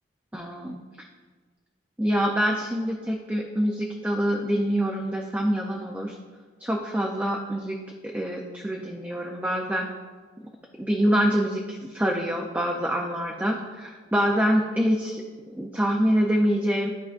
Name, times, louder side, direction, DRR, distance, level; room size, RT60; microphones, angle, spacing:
voice 1, 0.3-0.8 2.0-6.1 6.6-7.8 8.0-9.9 10.8-15.2 15.5-16.9, equal, 10° right, 0 dB, 0.5 m, -25 dB
12.0 x 4.8 x 2.5 m, 1.4 s
head